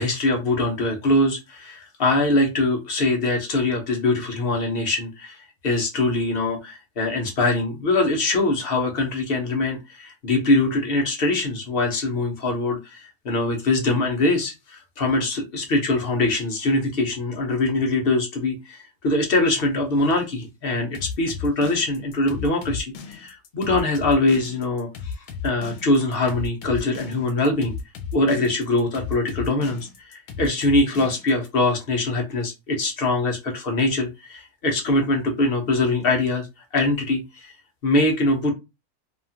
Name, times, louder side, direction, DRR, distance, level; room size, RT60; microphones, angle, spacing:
voice 1, 0.0-5.4 5.6-25.1 25.4-27.7 28.1-36.5 36.7-37.5 37.8-38.5, left 2 dB, 60° left, 2 dB, 0.6 m, -23 dB
sound 1, 20.9-31.5, left 5 dB, 85° left, 1.1 m, -34 dB
2.8 x 2.3 x 2.7 m, 0.25 s
omnidirectional pair, 1.7 m